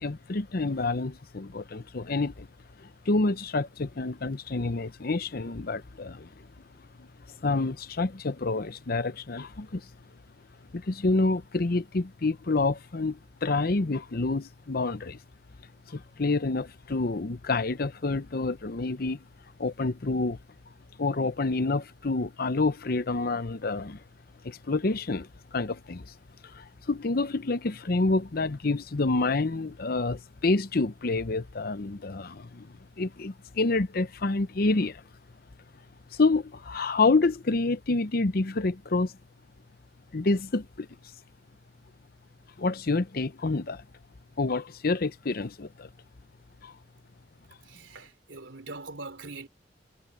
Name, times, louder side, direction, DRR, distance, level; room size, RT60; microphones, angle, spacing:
voice 1, 0.0-2.5 2.8-6.3 7.0-7.1 7.4-9.9 10.7-15.2 15.9-19.2 19.6-20.4 21.0-24.0 24.4-26.1 26.4-32.7 33.0-35.0 36.1-39.1 40.1-40.9 42.6-43.8 44.4-45.9 46.6-46.7, left 3 dB, 55° left, 0.8 m, -28 dB
voice 2, 47.6-49.5, right 3 dB, 85° right, 3.3 m, -42 dB
head